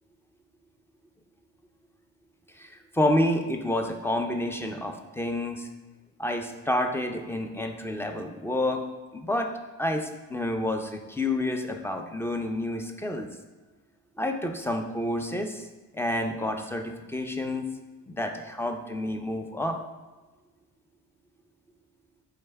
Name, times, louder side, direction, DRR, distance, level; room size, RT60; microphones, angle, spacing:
voice 1, 2.5-5.7 6.2-8.8 9.1-9.5 9.8-13.3 14.2-15.7 15.9-17.7 18.1-19.8, left 1 dB, 5° left, 4 dB, 0.4 m, -29 dB
4.6 x 3.3 x 3.3 m, 1.2 s
cardioid pair, 75°, 42 cm